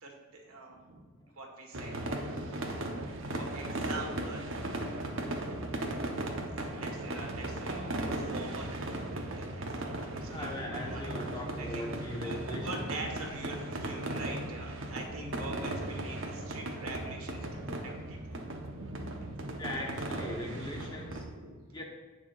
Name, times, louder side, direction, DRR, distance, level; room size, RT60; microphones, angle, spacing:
voice 1, 0.0-1.1 1.4-3.0 3.3-4.5 6.1-11.2 11.6-11.8 12.2-18.4 18.7-19.4 20.3-20.6 21.2-21.6, right 2 dB, 80° right, 1 dB, 1.7 m, -45 dB
sound 1, 1.7-21.2, right 1 dB, 60° right, 1.1 m, -37 dB
voice 2, 10.2-12.9 19.6-21.2 21.7-21.8, left 1 dB, 20° left, 0 dB, 1.2 m, -40 dB
17.0 x 6.1 x 2.6 m, 1.4 s
head